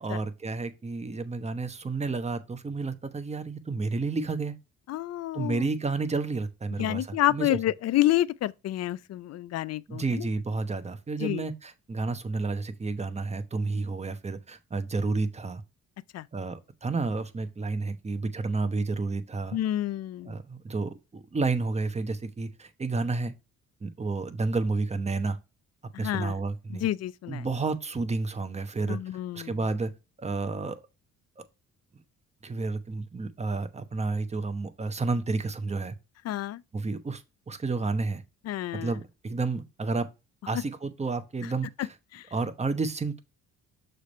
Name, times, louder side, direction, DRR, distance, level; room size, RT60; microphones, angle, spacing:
voice 1, 0.0-4.6 5.3-7.6 9.9-15.6 16.3-19.6 20.2-23.3 23.8-25.4 26.0-26.9 27.3-29.0 29.3-29.9 30.2-30.8 31.4-31.5 32.4-35.9 36.7-37.2 37.5-38.2 38.7-40.1 40.5-41.9 42.3-43.2, right 3 dB, 20° right, 0.9 m, -31 dB
voice 2, 4.9-5.6 6.8-10.3 11.2-11.4 16.1-16.3 19.5-20.4 25.9-26.3 26.7-27.5 28.9-29.6 36.2-36.6 38.4-38.9 40.5-40.6 41.8-41.9 42.1-42.3, left 14 dB, 55° left, 0.5 m, -29 dB
6.5 x 3.3 x 5.3 m
cardioid pair, 90°, 30 cm